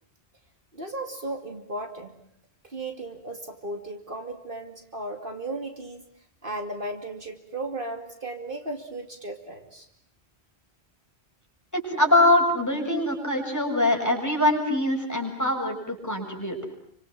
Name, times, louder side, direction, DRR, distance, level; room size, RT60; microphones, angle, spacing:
voice 1, 0.7-2.1 2.7-6.0 6.4-9.9, right 2 dB, 55° right, 5 dB, 2.8 m, -35 dB
voice 2, 11.7-16.6, left 1 dB, 15° left, 1 dB, 6.9 m, -23 dB
29.5 x 25.5 x 7.5 m, 0.68 s
omnidirectional pair, 1.1 m